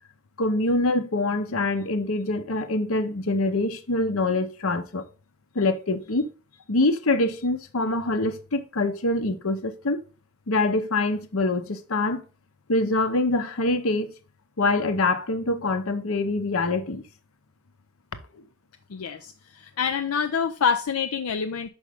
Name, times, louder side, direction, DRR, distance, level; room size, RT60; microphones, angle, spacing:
voice 1, 0.4-5.0 5.5-6.3 6.7-10.0 10.5-12.2 12.7-14.1 14.6-17.0, left 2 dB, 70° left, 0.9 m, -24 dB
voice 2, 18.9-21.7, left 6 dB, 85° left, 0.5 m, -26 dB
6.3 x 5.3 x 3.5 m
head